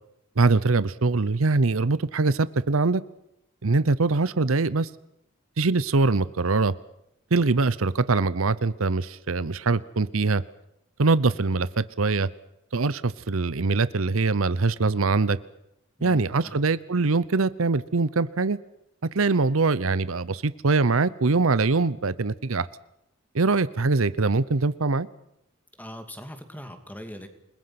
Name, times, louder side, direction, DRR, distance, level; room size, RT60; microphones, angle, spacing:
voice 1, 0.4-3.0 3.6-4.9 5.6-6.7 7.3-10.4 11.0-12.3 12.7-15.4 16.0-18.6 19.1-22.7 23.3-25.1, right 3 dB, 75° right, 17 dB, 0.8 m, -23 dB
voice 2, 16.0-16.6 25.8-27.3, equal, 10° left, 7 dB, 2.6 m, -41 dB
29.0 x 21.0 x 6.0 m, 0.82 s
head